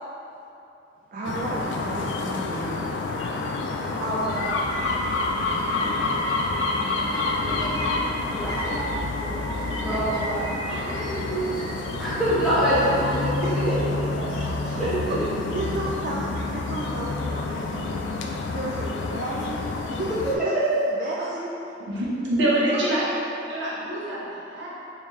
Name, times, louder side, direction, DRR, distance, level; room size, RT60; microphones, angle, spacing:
voice 1, 1.1-2.9 5.5-5.7 13.4-15.2 15.5-20.5 20.9-21.7, right 2 dB, 45° right, -5 dB, 0.3 m, -33 dB
sound 1, 1.2-20.4, left 3 dB, 80° left, 0.3 m, -28 dB
sound 2, 3.8-4.0 4.2-12.1, equal, 25° left, 0.7 m, -34 dB
voice 2, 4.0-4.6 8.1-8.9 9.4-9.5 9.8-13.3 13.6-13.7 14.6-14.9 20.5-20.6, right 1 dB, ahead, -13 dB, 1.0 m, -26 dB
voice 3, 21.9-23.1 23.5-24.7, right 1 dB, 75° right, -7 dB, 0.8 m, -25 dB
3.5 x 2.7 x 3.1 m, 2.7 s
head